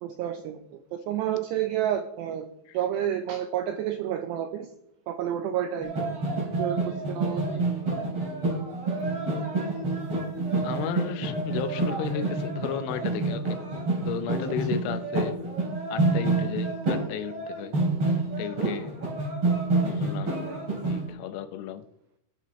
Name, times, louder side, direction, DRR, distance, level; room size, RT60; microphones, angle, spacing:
voice 1, 0.0-2.5 2.7-4.7 5.1-5.9 6.6-7.6, right 10 dB, 80° right, 2.5 m, -30 dB
sound 1, 5.8-21.1, right 2 dB, 30° right, 3.4 m, -28 dB
voice 2, 10.6-13.6 14.1-15.4 15.9-17.8 18.4-19.0 19.8-21.8, left 9 dB, 80° left, 3.2 m, -34 dB
19.5 x 8.9 x 3.1 m
omnidirectional pair, 5.7 m